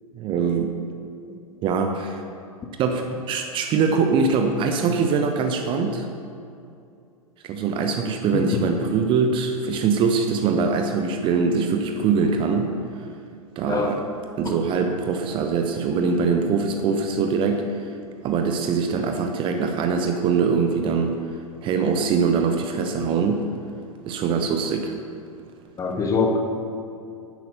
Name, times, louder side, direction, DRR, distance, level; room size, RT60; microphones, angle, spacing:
voice 1, 0.1-0.7 1.6-2.2 2.8-6.1 7.4-12.7 13.6-14.1 14.4-17.9 18.2-21.2 21.6-23.5 24.0-24.9, right 5 dB, 30° right, 5 dB, 0.9 m, -23 dB
voice 2, 25.8-26.4, left 4 dB, 20° left, 3 dB, 1.4 m, -23 dB
11.0 x 9.4 x 6.8 m, 2.5 s
figure-of-eight pair, 95°, 18 cm